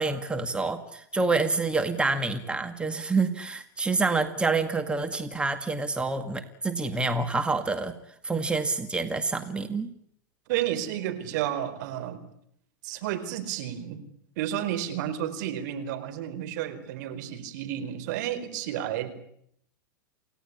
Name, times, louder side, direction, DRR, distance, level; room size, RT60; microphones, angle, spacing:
voice 1, 0.0-8.0 8.2-9.9, right 3 dB, 10° right, 7 dB, 2.0 m, -27 dB
voice 2, 10.5-12.2 12.8-14.0 14.4-19.1, right 11 dB, 60° right, 10 dB, 4.5 m, -31 dB
28.5 x 17.0 x 9.9 m, 0.72 s
hypercardioid pair, 110°, 11 cm